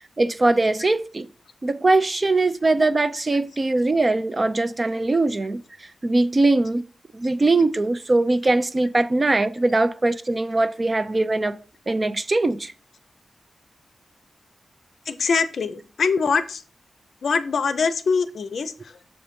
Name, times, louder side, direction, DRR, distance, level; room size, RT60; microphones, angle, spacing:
voice 1, 0.2-1.3 1.6-5.6 6.0-6.8 7.1-11.6 11.9-12.7, right 2 dB, 25° right, 0.4 m, -21 dB
voice 2, 15.1-16.6 17.2-19.0, left 5 dB, 60° left, 0.6 m, -23 dB
6.8 x 4.0 x 5.1 m
wide cardioid pair, 175°, 0 cm